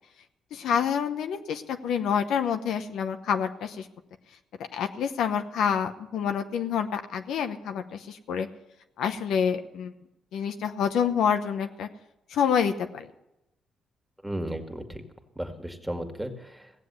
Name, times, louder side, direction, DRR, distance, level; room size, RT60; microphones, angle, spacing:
voice 1, 0.5-3.9 4.7-8.5 9.0-9.9 10.3-11.9 12.3-13.1, left 7 dB, 75° left, 7 dB, 0.9 m, -27 dB
voice 2, 14.2-15.0 15.4-16.7, right 1 dB, 5° right, 3 dB, 2.0 m, -34 dB
16.5 x 7.7 x 8.2 m, 0.90 s
cardioid pair, 90°, 0 cm